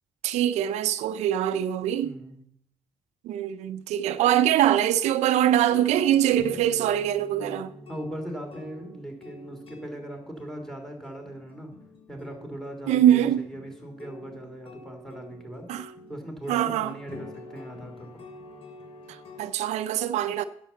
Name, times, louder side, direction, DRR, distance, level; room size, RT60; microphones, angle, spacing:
voice 1, 0.2-2.1 3.2-7.7 12.9-13.5 15.7-15.9 16.5-16.9 19.1-20.4, right 11 dB, 90° right, 0.6 m, -23 dB
voice 2, 2.0-2.4 7.9-11.7 12.1-18.1, right 1 dB, 5° left, 3.4 m, -39 dB
sound 1, 5.5-19.4, left 2 dB, 55° left, 3.2 m, -47 dB
10.0 x 7.4 x 7.1 m
cardioid pair, 90°, 11 cm